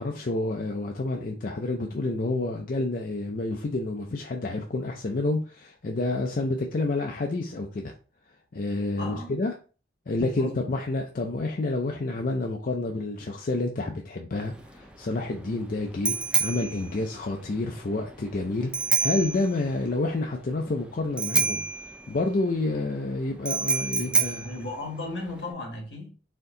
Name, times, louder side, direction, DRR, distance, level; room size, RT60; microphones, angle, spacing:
voice 1, 0.0-7.9 8.5-9.5 10.1-24.5, left 2 dB, 50° left, 0.5 m, -29 dB
voice 2, 8.9-9.3 10.4-10.8 23.9-26.1, left 2 dB, 80° left, 1.5 m, -36 dB
Bicycle bell, 14.4-25.5, right 4 dB, 5° right, 0.4 m, -29 dB
4.3 x 2.7 x 3.8 m
head